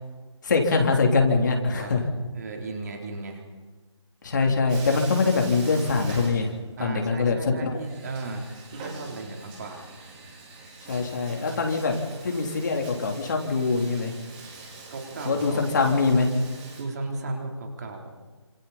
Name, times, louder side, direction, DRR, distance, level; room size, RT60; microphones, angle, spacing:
voice 1, 0.4-2.0 4.2-6.5 6.8-7.8 10.9-11.9 12.2-14.1 15.2-16.3, left 4 dB, 40° left, 2 dB, 3.5 m, -23 dB
voice 2, 2.3-3.4 6.8-8.5 8.7-9.9 14.9-16.0 16.8-18.0, right 3 dB, 35° right, 1 dB, 3.8 m, -35 dB
Bathtub (filling or washing), 4.7-7.0 7.2-7.3 7.8-16.8, right 3 dB, 15° right, 3.9 m, -44 dB
28.5 x 27.5 x 4.4 m, 1.3 s
hypercardioid pair, 170°, 15 cm